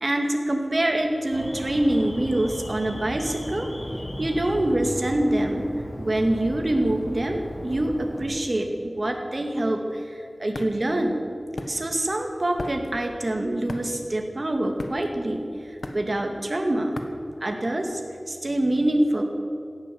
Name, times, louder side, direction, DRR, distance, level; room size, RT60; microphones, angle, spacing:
voice 1, 0.0-3.7 4.2-5.7 6.0-11.2 11.7-17.0 17.4-18.0 18.3-19.2, right 1 dB, 50° right, 3 dB, 2.1 m, -25 dB
Alarm, 1.3-8.2, equal, 60° left, 2.9 m, -36 dB
sound 1, 9.9-18.1, left 2 dB, 85° left, 1.3 m, -39 dB
17.0 x 11.0 x 7.7 m, 2.4 s
wide cardioid pair, 60°, 0 cm